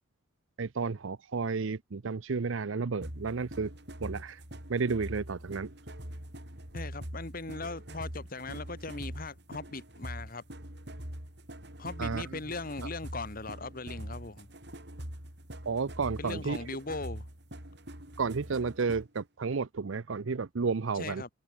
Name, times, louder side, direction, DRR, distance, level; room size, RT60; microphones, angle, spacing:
voice 1, 0.6-3.7 4.0-4.4 4.7-5.7 12.0-12.4 15.7-16.7 18.2-21.2, right 4 dB, 75° right, 0.6 m, -32 dB
sound 1, 3.0-19.2, equal, 55° right, 6.5 m, -43 dB
voice 2, 6.7-10.4 11.8-14.5 16.2-17.3 20.9-21.3, left 3 dB, 45° left, 1.7 m, -39 dB
head